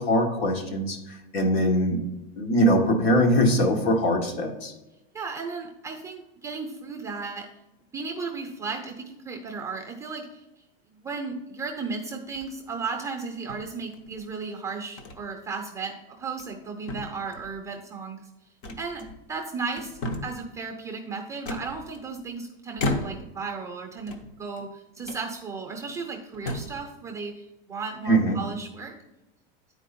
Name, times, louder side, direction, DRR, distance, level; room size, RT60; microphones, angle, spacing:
voice 1, 0.0-2.0 2.4-4.7 28.1-28.4, equal, 75° left, 2 dB, 1.8 m, -22 dB
voice 2, 5.1-7.5 7.9-10.4 11.0-18.2 18.8-19.0 19.3-28.9, right 4 dB, 10° right, 2 dB, 0.6 m, -35 dB
sound 1, 12.3-12.7 13.5-14.2 15.0-15.2 15.6-15.7 16.2-16.6 16.9-17.6 18.6-19.4 19.7-20.5 21.4-22.3 22.8-23.4 24.0-24.7 25.0-25.3 25.9-26.0 26.3-26.8, left 2 dB, 50° left, 0.9 m, -34 dB
9.7 x 4.5 x 4.2 m, 0.97 s
supercardioid pair, 170°, 31 cm